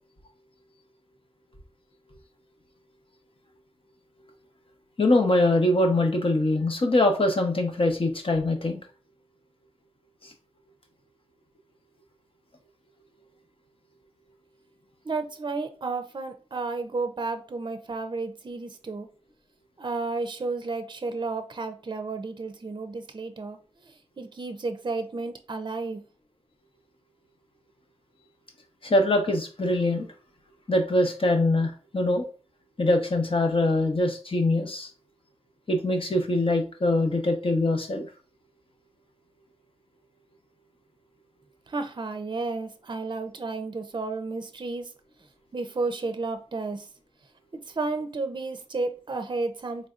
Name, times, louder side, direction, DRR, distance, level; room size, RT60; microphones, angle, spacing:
voice 1, 5.0-8.8 10.2-10.3 28.8-30.1 30.7-32.3 32.8-34.9 35.7-38.1, left 1 dB, 50° left, 0.9 m, -23 dB
voice 2, 15.0-19.1 19.8-26.0 41.7-44.9 45.5-46.9 47.5-49.9, right 3 dB, 40° right, 0.5 m, -32 dB
4.1 x 3.2 x 2.4 m
wide cardioid pair, 70°, 12 cm